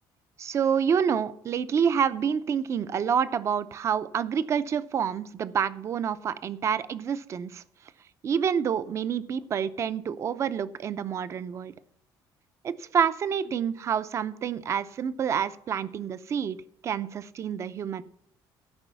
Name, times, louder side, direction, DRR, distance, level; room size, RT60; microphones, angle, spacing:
voice 1, 0.4-7.6 8.2-11.7 12.6-16.6 16.8-18.0, right 7 dB, 35° right, 14 dB, 0.6 m, -28 dB
13.5 x 5.4 x 6.8 m, 0.67 s
cardioid pair, 150°, 8 cm